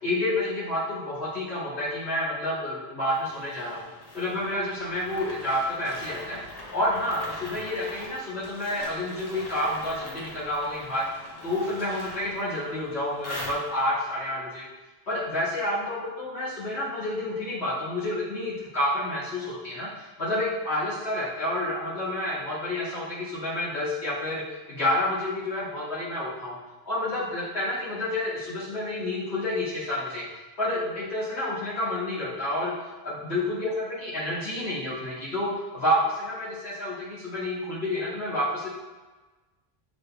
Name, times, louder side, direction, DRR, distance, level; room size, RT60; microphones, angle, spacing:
voice 1, 0.0-3.8 4.1-6.4 6.7-11.1 11.4-14.7 15.1-26.5 26.9-30.2 30.6-32.7 33.0-38.7, left 1 dB, 85° left, -9 dB, 2.0 m, -29 dB
sound 1, 3.1-14.1, left 1 dB, 40° left, 0.9 m, -42 dB
6.8 x 3.4 x 2.2 m, 1.2 s
omnidirectional pair, 1.1 m